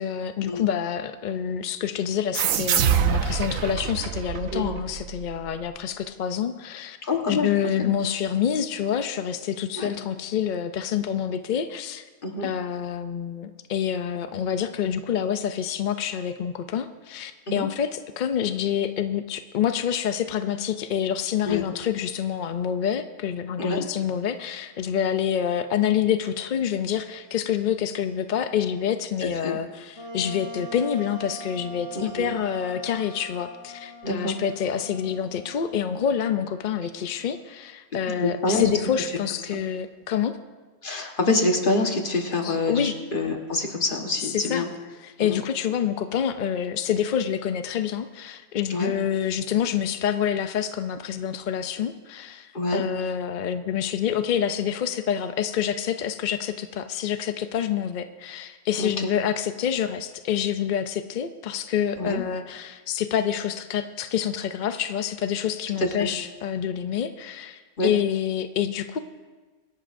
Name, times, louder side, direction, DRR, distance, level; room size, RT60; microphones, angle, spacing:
voice 1, 0.0-7.0 7.3-12.0 12.4-40.4 42.4-42.9 44.3-44.6 45.0-69.0, left 9 dB, 60° left, 9 dB, 0.5 m, -27 dB
sound 1, 2.3-5.6, right 8 dB, 85° right, 1.1 m, -25 dB
voice 2, 7.0-7.5 7.8-7.9 9.8-9.9 12.2-12.5 17.5-17.7 21.4-21.6 23.6-23.8 29.2-29.6 31.9-32.3 34.0-34.4 38.2-38.8 39.5-39.6 40.8-44.7 45.2-45.4 48.7-48.9 52.5-52.8 58.8-59.1 62.0-62.2 65.8-66.1 67.8-67.9, left 2 dB, 40° left, 3 dB, 1.4 m, -26 dB
Wind instrument woodwind instrument, 29.9-37.4, right 1 dB, 25° left, 2.1 m, -42 dB
24.5 x 11.5 x 2.6 m, 1.4 s
omnidirectional pair, 1.4 m